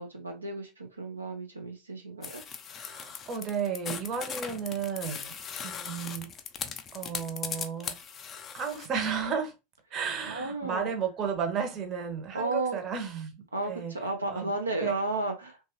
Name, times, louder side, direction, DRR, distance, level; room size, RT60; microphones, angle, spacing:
voice 1, 0.0-2.4 10.2-10.9 12.3-12.8 13.5-15.7, right 2 dB, 80° right, 0.5 m, -33 dB
sound 1, 2.2-8.9, left 7 dB, 30° left, 0.4 m, -39 dB
voice 2, 2.8-5.4 5.6-6.3 6.9-8.0 8.5-9.5 9.9-13.9 14.3-14.5 14.8-14.9, right 6 dB, 35° right, 0.8 m, -33 dB
3.0 x 2.2 x 2.7 m
figure-of-eight pair, 85°, 0 cm